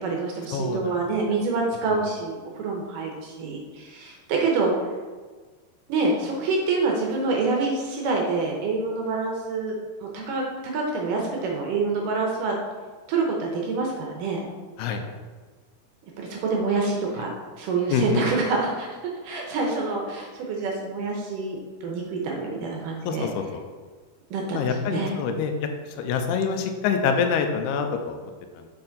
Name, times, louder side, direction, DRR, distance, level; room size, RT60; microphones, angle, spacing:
voice 1, 0.0-4.9 5.9-12.6 13.1-14.4 16.2-17.3 17.6-23.3 24.3-25.2, right 3 dB, 75° right, 0 dB, 2.0 m, -27 dB
voice 2, 0.5-0.9 14.8-15.0 17.9-18.2 23.1-23.4 24.5-25.7 26.0-28.7, left 6 dB, 85° left, 5 dB, 2.5 m, -26 dB
7.4 x 4.4 x 4.0 m, 1.4 s
omnidirectional pair, 4.6 m